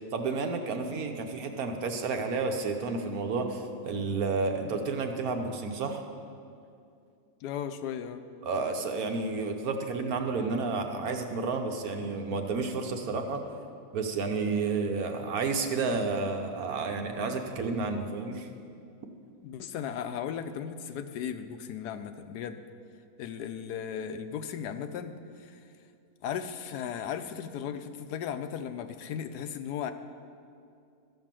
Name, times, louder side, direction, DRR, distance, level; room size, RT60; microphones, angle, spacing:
voice 1, 0.1-6.0 8.4-13.4 13.9-18.5, right 4 dB, 65° right, 4 dB, 1.3 m, -31 dB
voice 2, 7.4-8.2 19.4-22.6 23.2-25.6 26.2-29.9, left 8 dB, 80° left, 9 dB, 1.2 m, -36 dB
13.5 x 5.5 x 7.5 m, 2.4 s
omnidirectional pair, 1.7 m